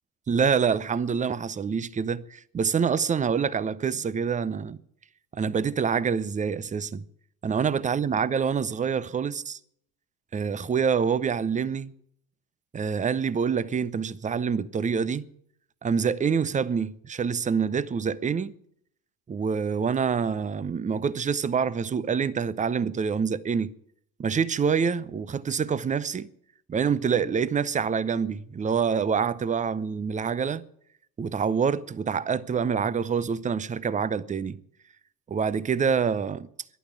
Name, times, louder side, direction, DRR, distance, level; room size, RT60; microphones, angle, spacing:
voice 1, 0.3-4.8 5.3-7.0 7.4-9.6 10.3-11.9 12.7-15.3 15.8-18.5 19.3-23.7 24.2-26.3 26.7-30.6 31.2-34.6 35.3-36.5, right 6 dB, 15° right, 0.6 m, -26 dB
12.5 x 11.5 x 9.2 m
hypercardioid pair, 65°, 49 cm